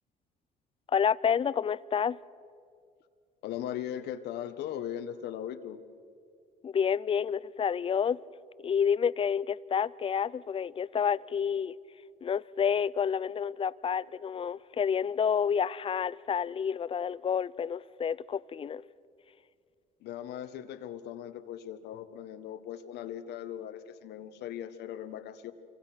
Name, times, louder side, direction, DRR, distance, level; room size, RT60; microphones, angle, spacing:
voice 1, 0.9-2.2 6.6-8.2 8.6-11.8 12.2-18.8, left 7 dB, 35° left, 0.5 m, -29 dB
voice 2, 3.4-5.8 20.0-25.5, left 10 dB, 80° left, 1.5 m, -39 dB
27.0 x 24.0 x 6.2 m
cardioid pair, 110°, 17 cm